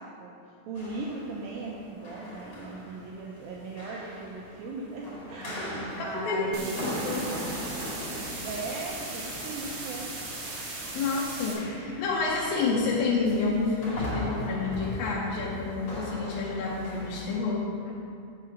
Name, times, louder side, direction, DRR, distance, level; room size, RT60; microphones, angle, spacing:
voice 1, 0.0-6.8 8.4-10.1, right 3 dB, 85° right, -3 dB, 2.1 m, -38 dB
sound 1, 0.7-17.3, left 1 dB, 40° left, 2.3 m, -39 dB
voice 2, 6.0-6.6 6.8-7.3 10.9-17.9, left 4 dB, 75° left, -4 dB, 2.2 m, -29 dB
sound 2, 6.5-11.5, right 2 dB, 60° right, 1.6 m, -38 dB
7.5 x 4.8 x 7.1 m, 2.4 s
omnidirectional pair, 4.9 m